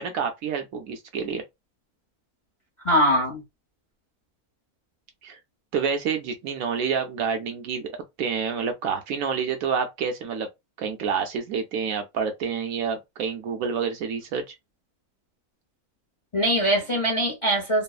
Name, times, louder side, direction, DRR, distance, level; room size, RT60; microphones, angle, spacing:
voice 1, 0.0-1.4 5.2-5.4 5.7-10.5 10.8-14.5, right 6 dB, 70° right, 1.0 m, -28 dB
voice 2, 2.8-3.4 16.3-17.8, equal, 30° left, 0.6 m, -22 dB
3.0 x 2.0 x 2.3 m
omnidirectional pair, 1.6 m